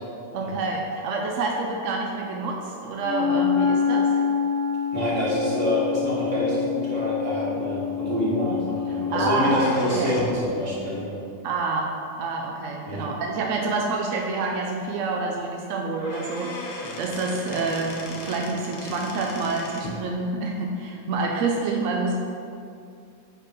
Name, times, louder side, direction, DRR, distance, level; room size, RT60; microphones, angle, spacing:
voice 1, 0.3-4.2 8.9-10.2 11.4-11.9 12.2-22.2, right 3 dB, 70° right, 0 dB, 0.8 m, -27 dB
Wind instrument woodwind instrument, 3.0-9.7, left 7 dB, 60° left, 1.0 m, -26 dB
voice 2, 4.9-11.2 12.8-13.1, equal, 50° right, -7 dB, 1.8 m, -26 dB
sound 1, 9.3-10.5 12.2-12.3 13.2-13.3 13.8-13.9 14.2-14.3 15.6-15.7 16.0-20.0, left 2 dB, 85° left, 1.4 m, -37 dB
5.0 x 4.8 x 4.4 m, 2.5 s
omnidirectional pair, 1.7 m